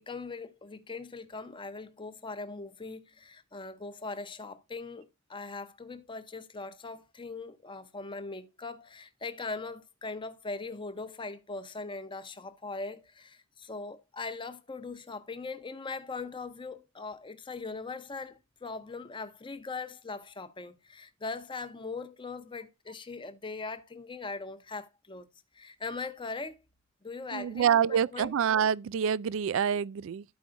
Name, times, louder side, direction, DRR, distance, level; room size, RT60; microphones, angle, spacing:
voice 1, 0.0-25.3 25.5-26.6 27.0-28.3, left 3 dB, 25° left, 0.7 m, -40 dB
voice 2, 27.3-30.2, right 8 dB, 65° right, 0.3 m, -27 dB
13.0 x 4.7 x 2.5 m
head